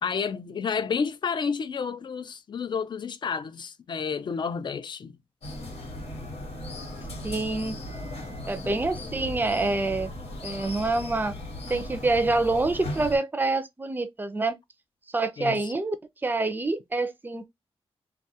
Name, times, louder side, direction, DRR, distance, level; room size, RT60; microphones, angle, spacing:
voice 1, 0.0-5.1 15.4-15.7, left 6 dB, 50° left, 0.4 m, -30 dB
sound 1, 5.4-13.2, left 1 dB, 90° left, 1.1 m, -37 dB
voice 2, 7.2-7.8 8.5-10.1 10.4-11.3 11.7-14.6 15.1-16.0 16.2-17.5, right 2 dB, 20° right, 0.4 m, -26 dB
2.3 x 2.2 x 2.7 m
cardioid pair, 95°, 10 cm